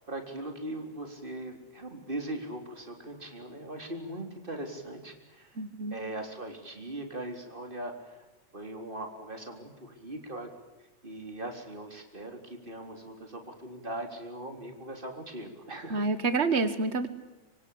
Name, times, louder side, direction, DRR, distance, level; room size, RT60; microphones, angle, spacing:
voice 1, 0.1-5.6 5.9-8.3 8.5-10.5 11.0-16.1, right 1 dB, 15° right, 4 dB, 3.7 m, -40 dB
voice 2, 5.6-6.0 15.9-17.1, right 3 dB, 85° right, 11 dB, 0.5 m, -28 dB
25.5 x 25.0 x 8.6 m, 1.0 s
omnidirectional pair, 3.7 m